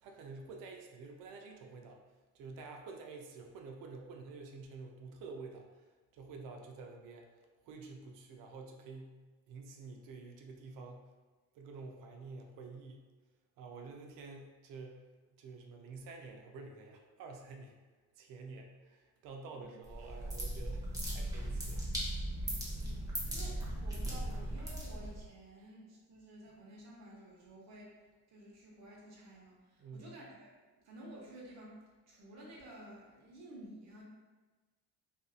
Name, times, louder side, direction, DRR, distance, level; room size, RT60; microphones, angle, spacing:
voice 1, 0.0-2.0 2.3-5.8 6.1-7.3 7.6-9.2 9.5-11.1 11.5-13.0 13.6-15.0 15.3-17.8 18.2-21.9 29.8-30.2, right 4 dB, 75° right, 2 dB, 0.5 m, -49 dB
sound 1, 19.8-25.3, right 1 dB, 10° right, 0.8 m, -38 dB
voice 2, 22.7-27.9 28.3-30.5 30.8-31.8 32.1-34.0, right 1 dB, 50° right, -3 dB, 0.9 m, -52 dB
2.6 x 2.4 x 2.4 m, 1.3 s
cardioid pair, 105°, 33 cm